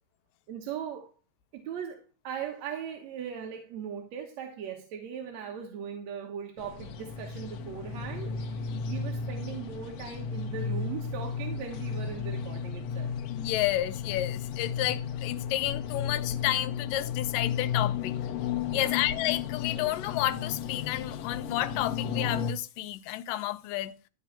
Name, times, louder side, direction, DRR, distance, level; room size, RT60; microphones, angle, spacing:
voice 1, 0.5-1.1 1.5-13.2 18.7-19.0, right 8 dB, 65° right, 2.2 m, -39 dB
sound 1, 6.6-22.5, left 7 dB, 65° left, 1.7 m, -34 dB
voice 2, 13.3-18.1 18.7-23.9, left 14 dB, 85° left, 2.4 m, -31 dB
13.0 x 4.6 x 7.3 m
omnidirectional pair, 3.8 m